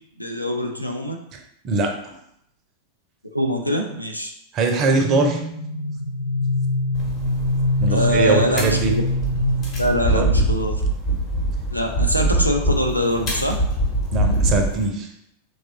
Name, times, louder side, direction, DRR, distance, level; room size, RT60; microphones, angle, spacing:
voice 1, 0.2-1.2 3.3-4.3 7.9-8.8 9.8-10.8 11.7-13.6, equal, 90° left, 3 dB, 0.3 m, -23 dB
voice 2, 1.6-2.2 4.5-5.4 7.8-9.0 10.1-10.3 14.1-15.1, right 3 dB, 35° right, 3 dB, 0.4 m, -21 dB
sound 1, 4.9-10.5, left 2 dB, 85° right, 0.5 m, -24 dB
sound 2, 6.9-14.8, right 1 dB, 35° left, 1.0 m, -24 dB
3.0 x 2.3 x 2.6 m, 0.76 s
figure-of-eight pair, 90°, 0 cm